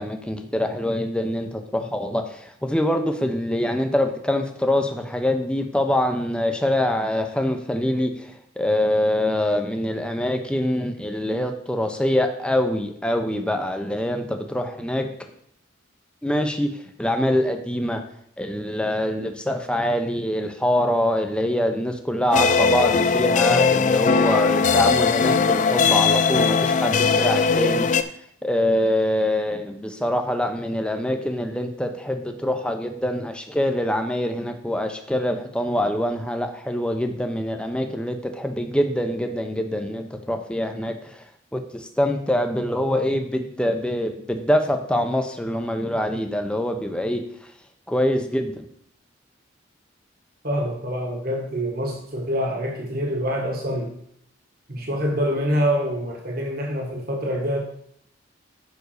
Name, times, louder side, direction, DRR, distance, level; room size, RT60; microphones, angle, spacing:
voice 1, 0.0-15.1 16.2-16.7 17.0-18.0 18.4-27.9 28.4-41.2 41.5-47.2 47.9-48.7, left 1 dB, 5° left, 5 dB, 0.8 m, -24 dB
sound 1, 22.3-28.0, left 5 dB, 40° left, 0.4 m, -19 dB
voice 2, 50.4-53.9 54.7-57.6, equal, 50° right, 0 dB, 1.8 m, -25 dB
7.2 x 5.3 x 6.6 m, 0.69 s
head